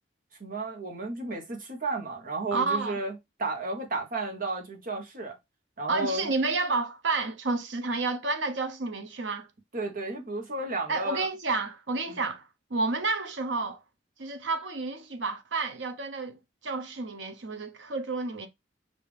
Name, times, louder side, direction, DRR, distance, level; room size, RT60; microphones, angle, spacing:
voice 1, 0.4-3.1 3.4-5.4 5.8-6.3 9.7-11.3 12.1-12.2, right 2 dB, 50° right, 1.3 m, -33 dB
voice 2, 2.5-3.0 5.9-9.5 10.9-13.8 14.2-18.5, right 3 dB, 85° right, 0.9 m, -30 dB
5.2 x 2.8 x 3.3 m
head